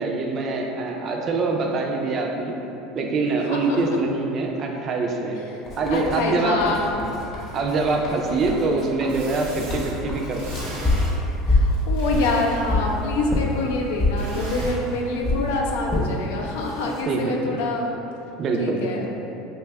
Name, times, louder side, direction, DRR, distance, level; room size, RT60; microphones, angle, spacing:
voice 1, 0.0-2.6 2.9-5.4 5.7-6.6 6.9-7.1 7.5-10.4 10.7-10.9 17.1-17.6 18.4-18.9, right 3 dB, 45° right, 1 dB, 0.3 m, -24 dB
voice 2, 3.4-3.8 5.3-5.6 5.9-7.1 11.5-17.9 18.6-19.1, left 2 dB, 85° left, 0 dB, 0.4 m, -26 dB
Writing, 5.7-10.9, left 2 dB, 40° left, 0.8 m, -36 dB
sound 1, 7.9-8.0 9.1-9.9 10.3-11.1 11.7-12.9 14.2-14.7, right 1 dB, 80° right, 0.7 m, -38 dB
sound 2, 10.8-11.1 11.5-11.8 12.1-12.9 13.3-13.5 14.0-14.2 14.6-14.8 15.2-15.4 15.9-16.1 16.7-17.0, left 2 dB, 10° left, 0.6 m, -21 dB
2.6 x 2.2 x 3.4 m, 2.9 s
supercardioid pair, 110°, 0 cm